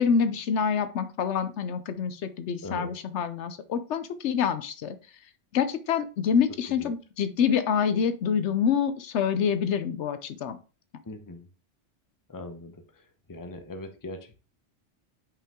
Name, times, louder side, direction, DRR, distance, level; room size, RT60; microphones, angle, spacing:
voice 1, 0.0-5.0 5.5-10.6, left 7 dB, 75° left, 11 dB, 0.9 m, -26 dB
voice 2, 2.6-2.9 6.7-6.9 11.0-11.5 12.3-14.4, left 2 dB, 20° left, 7 dB, 0.7 m, -41 dB
5.5 x 5.3 x 3.6 m, 0.34 s
omnidirectional pair, 1.2 m